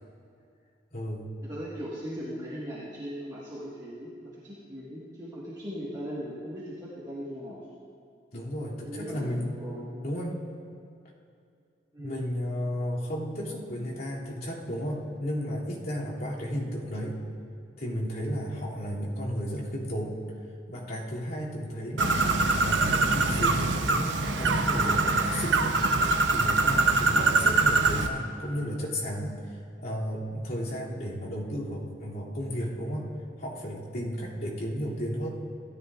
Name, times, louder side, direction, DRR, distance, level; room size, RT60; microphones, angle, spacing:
voice 1, 0.9-1.3 8.3-9.6 10.0-10.5 12.0-17.2 17.8-20.2 20.7-22.2 22.6-25.8 26.3-33.1 33.4-35.3, equal, 55° left, -7 dB, 2.8 m, -33 dB
voice 2, 1.4-7.7 8.8-10.0 11.9-12.2, equal, 20° right, -9 dB, 1.7 m, -39 dB
Bird, 22.0-28.1, right 3 dB, 85° right, 0.8 m, -24 dB
16.5 x 13.5 x 2.5 m, 2.5 s
head